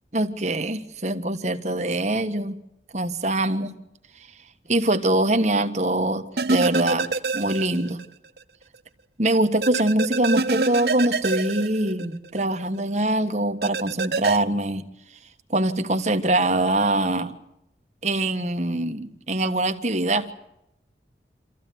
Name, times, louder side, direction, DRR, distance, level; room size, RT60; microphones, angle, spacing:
voice 1, 0.1-2.6 2.9-3.7 4.7-7.1 7.3-8.0 9.2-14.8 15.5-17.3 18.0-20.3, right 1 dB, 40° right, 7 dB, 1.5 m, -23 dB
sound 1, 6.4-8.1 8.4-8.5 9.6-12.4 13.6-14.4, right 3 dB, 60° right, 0.8 m, -26 dB
25.5 x 15.0 x 9.4 m, 0.83 s
head